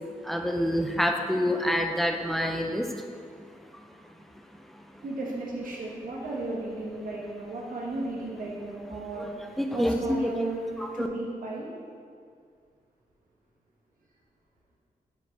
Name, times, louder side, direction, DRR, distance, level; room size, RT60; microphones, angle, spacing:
voice 1, 0.2-2.9 9.6-10.3 10.8-11.1, equal, ahead, 3 dB, 0.4 m, -27 dB
voice 2, 5.0-9.3 9.7-10.6 10.9-11.7, right 2 dB, 70° right, -4 dB, 1.2 m, -35 dB
5.3 x 4.8 x 4.4 m, 2.2 s
wide cardioid pair, 180°, 15 cm